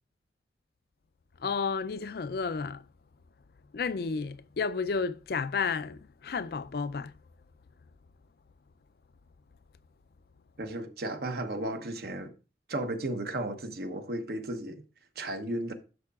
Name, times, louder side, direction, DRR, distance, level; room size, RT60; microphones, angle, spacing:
voice 1, 1.4-2.8 3.7-7.1, left 5 dB, 55° left, 0.4 m, -32 dB
voice 2, 10.6-12.3 12.7-14.8 15.2-15.7, right 1 dB, 60° right, 1.0 m, -34 dB
11.0 x 6.8 x 2.4 m
head